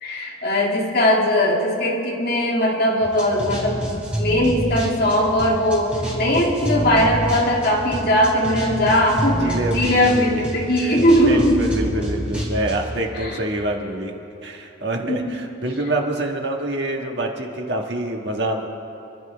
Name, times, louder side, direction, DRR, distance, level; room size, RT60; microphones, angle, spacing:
voice 1, 0.0-11.7 13.1-13.4 15.1-15.4, equal, 50° left, -2 dB, 2.4 m, -19 dB
sound 1, 3.0-13.0, right 1 dB, 5° right, 3.2 m, -28 dB
voice 2, 9.4-10.9 11.2-18.7, right 1 dB, 55° right, 1 dB, 1.7 m, -26 dB
28.0 x 12.0 x 3.5 m, 3.0 s
head